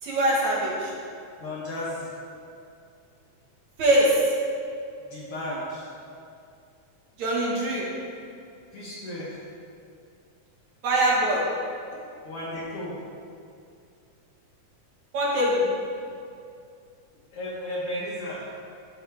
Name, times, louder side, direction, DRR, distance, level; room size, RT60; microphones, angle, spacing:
voice 1, 0.0-0.9 3.8-4.3 7.2-7.9 10.8-11.5 15.1-15.7, right 1 dB, 70° right, -5 dB, 2.7 m, -22 dB
voice 2, 1.4-2.1 5.0-5.9 8.7-9.4 12.2-13.0 17.3-18.5, left 1 dB, 60° left, -6 dB, 1.7 m, -34 dB
12.5 x 5.6 x 3.5 m, 2.5 s
omnidirectional pair, 3.6 m